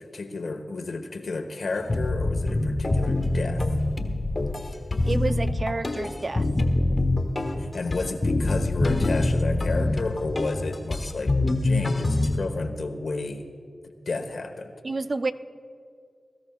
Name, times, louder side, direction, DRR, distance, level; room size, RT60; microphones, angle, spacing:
voice 1, 0.0-3.6 7.6-11.4 11.6-13.5 14.1-14.7, left 3 dB, 70° left, 6 dB, 1.2 m, -32 dB
sound 1, 1.9-12.4, left 2 dB, 45° left, 1.4 m, -25 dB
voice 2, 5.1-6.4 14.8-15.3, right 3 dB, 50° right, 10 dB, 0.6 m, -29 dB
23.0 x 13.0 x 2.4 m, 2.2 s
cardioid pair, 40°, 0 cm